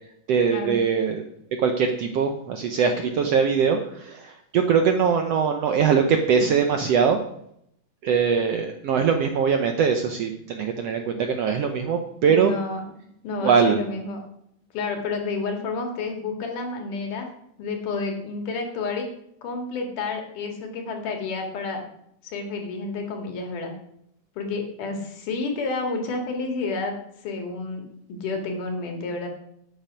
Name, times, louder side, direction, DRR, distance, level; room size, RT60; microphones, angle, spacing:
voice 1, 0.3-1.2 1.6-7.2 8.0-12.5 13.4-13.8, right 6 dB, 75° right, 5 dB, 1.5 m, -22 dB
voice 2, 12.2-12.8 13.2-14.2 14.7-17.3 17.6-19.1 19.4-21.9 22.2-23.7 24.4-26.9 27.2-29.3, left 3 dB, 75° left, 3 dB, 3.4 m, -30 dB
11.5 x 8.8 x 5.1 m, 0.74 s
omnidirectional pair, 3.8 m